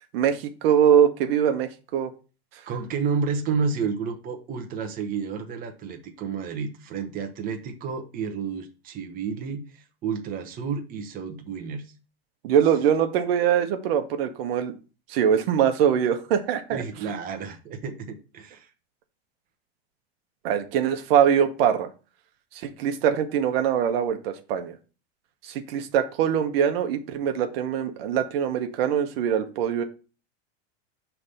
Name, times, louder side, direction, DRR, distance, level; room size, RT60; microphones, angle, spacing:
voice 1, 0.1-2.1 12.4-14.7 15.1-16.8 20.4-21.9 22.5-24.8 25.4-29.8, right 8 dB, 65° right, 7 dB, 1.0 m, -23 dB
voice 2, 2.7-11.9 16.7-18.7, right 5 dB, 25° right, 4 dB, 0.9 m, -31 dB
5.8 x 3.4 x 5.4 m, 0.34 s
supercardioid pair, 140°, 31 cm